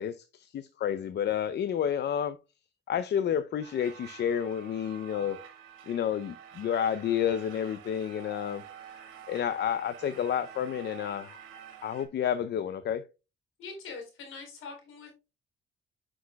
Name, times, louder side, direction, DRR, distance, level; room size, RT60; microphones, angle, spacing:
voice 1, 0.0-2.4 2.9-5.4 5.9-11.4 11.8-13.0, left 9 dB, 60° left, 0.6 m, -30 dB
sound 1, 3.6-12.1, right 9 dB, 90° right, 2.1 m, -48 dB
voice 2, 13.6-15.1, left 4 dB, 85° left, 4.0 m, -43 dB
9.6 x 6.2 x 2.3 m
cardioid pair, 90°, 20 cm